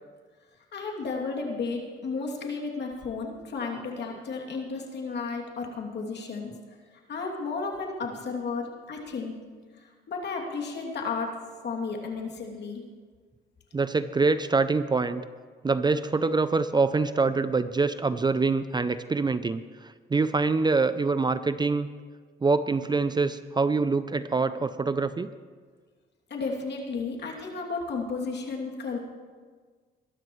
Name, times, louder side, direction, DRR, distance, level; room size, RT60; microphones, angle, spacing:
voice 1, 0.7-6.5 7.1-9.3 9.8-12.8 26.3-29.0, left 4 dB, 60° left, 0 dB, 2.7 m, -33 dB
voice 2, 13.7-15.2 15.6-21.9 22.4-25.3, right 4 dB, 20° right, 13 dB, 0.5 m, -25 dB
22.0 x 13.0 x 3.2 m, 1.5 s
cardioid pair, 90°, 20 cm